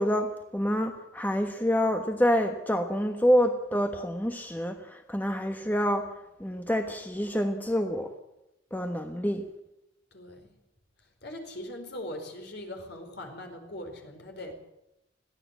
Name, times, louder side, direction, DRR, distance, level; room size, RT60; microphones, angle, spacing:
voice 1, 0.0-6.1 6.4-8.1 8.7-9.4, equal, 10° left, 1.2 m, -27 dB
voice 2, 10.1-10.5 11.2-14.5, left 1 dB, 60° left, 4.7 m, -40 dB
21.5 x 15.5 x 8.4 m
head